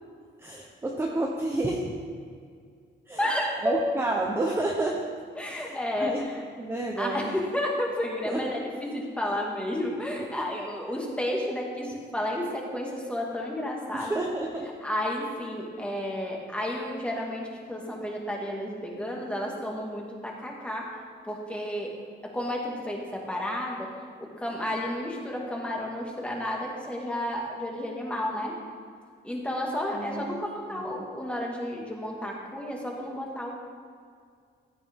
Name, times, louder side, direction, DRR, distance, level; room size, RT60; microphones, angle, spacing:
voice 1, 0.4-1.9 3.1-3.2 3.6-5.0 5.5-6.3 6.6-7.3 8.2-8.4 10.2-10.4 13.9-14.7 29.9-30.4 30.7-31.0, right 2 dB, 10° right, -1 dB, 0.8 m, -30 dB
voice 2, 3.2-3.8 5.4-6.4 7.0-14.2 14.8-21.0 21.3-21.9 22.2-23.9 24.2-28.5 29.2-33.5, left 1 dB, 5° left, -2 dB, 1.8 m, -32 dB
15.5 x 12.0 x 3.6 m, 2.1 s
cardioid pair, 180°, 19 cm